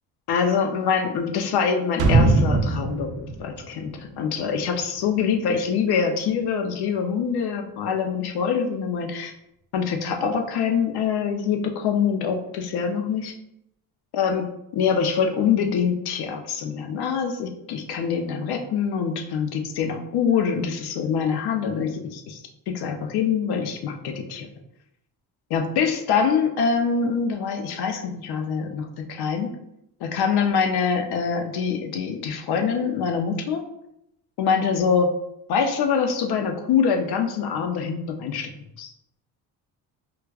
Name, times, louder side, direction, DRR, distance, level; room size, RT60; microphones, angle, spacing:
voice 1, 0.3-9.3 9.7-13.3 14.1-14.5 14.7-22.4 22.7-24.5 25.5-29.5 30.0-33.6 34.4-35.1 35.5-38.5 38.8-38.9, left 6 dB, 70° left, 4 dB, 0.6 m, -24 dB
sound 1, 2.0-4.8 5.1-5.2, right 3 dB, 40° right, 0.5 m, -21 dB
4.6 x 2.3 x 2.3 m, 0.82 s
cardioid pair, 125°, 41 cm